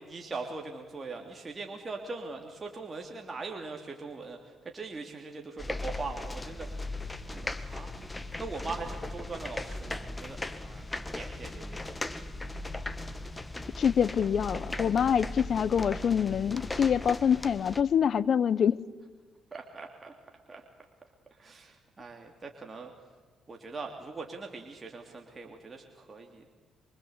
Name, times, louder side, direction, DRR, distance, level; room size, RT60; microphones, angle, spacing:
voice 1, 0.0-8.1 8.4-12.0 19.5-20.1 20.5-20.6 21.3-22.9 23.5-26.5, right 3 dB, 30° right, 3.1 m, -41 dB
sound 1, 5.6-17.8, left 2 dB, 15° left, 1.8 m, -38 dB
voice 2, 13.8-18.8, left 8 dB, 55° left, 0.9 m, -25 dB
25.5 x 24.5 x 8.3 m
cardioid pair, 90°, 0 cm